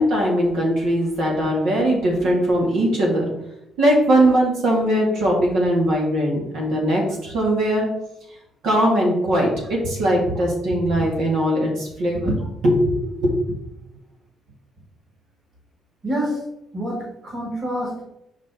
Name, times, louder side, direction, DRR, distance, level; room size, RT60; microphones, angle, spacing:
voice 1, 0.0-3.3 3.8-7.9 8.6-9.5 9.9-12.3 12.6-13.4, equal, 80° right, -2 dB, 1.9 m, -20 dB
voice 2, 16.0-16.4 16.7-18.0, right 1 dB, 35° right, -1 dB, 1.8 m, -26 dB
5.8 x 4.9 x 3.6 m, 0.82 s
cardioid pair, 165°, 0 cm